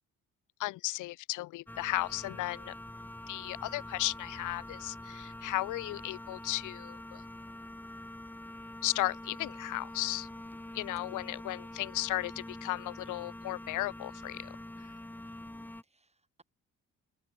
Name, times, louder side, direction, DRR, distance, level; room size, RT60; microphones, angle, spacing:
voice 1, 0.6-2.7 3.3-7.2 8.8-10.3 10.7-14.5, left 18 dB, 80° left, 0.6 m, -35 dB
sound 1, 1.7-15.8, left 1 dB, 5° left, 1.1 m, -45 dB
voice 2, 15.2-16.4, right 3 dB, 20° right, 4.9 m, -66 dB
cardioid pair, 90°, 30 cm